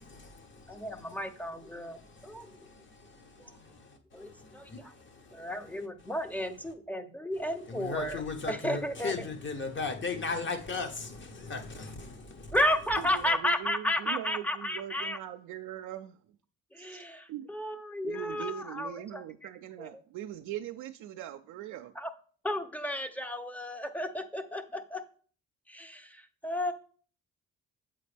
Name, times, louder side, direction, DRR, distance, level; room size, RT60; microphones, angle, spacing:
voice 1, 0.0-1.1 1.7-5.8 7.3-12.6, left 4 dB, 40° left, 1.1 m, -38 dB
voice 2, 0.7-2.6 4.1-4.9 5.3-9.1 12.5-15.2 16.7-19.2 19.8-19.9 22.0-22.1 22.4-25.0 25.7-26.7, left 1 dB, 5° left, 0.7 m, -33 dB
voice 3, 13.0-16.2 16.8-17.6 18.0-21.9, right 11 dB, 80° right, 0.4 m, -41 dB
7.7 x 4.2 x 3.3 m
cardioid pair, 90°, 30 cm